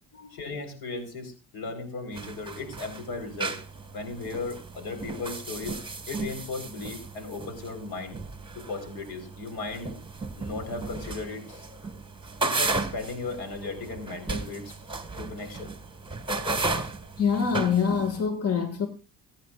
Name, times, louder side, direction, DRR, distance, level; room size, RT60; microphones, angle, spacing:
voice 1, 0.3-3.6 3.9-5.8 6.1-8.2 8.5-9.9 10.4-11.7 12.4-14.8 15.1-15.7, left 3 dB, 70° left, 4.4 m, -36 dB
sound 1, 2.1-18.2, right 3 dB, 10° right, 1.7 m, -35 dB
voice 2, 17.2-18.9, left 6 dB, 40° left, 2.0 m, -25 dB
26.0 x 9.4 x 2.5 m
cardioid pair, 85°, 39 cm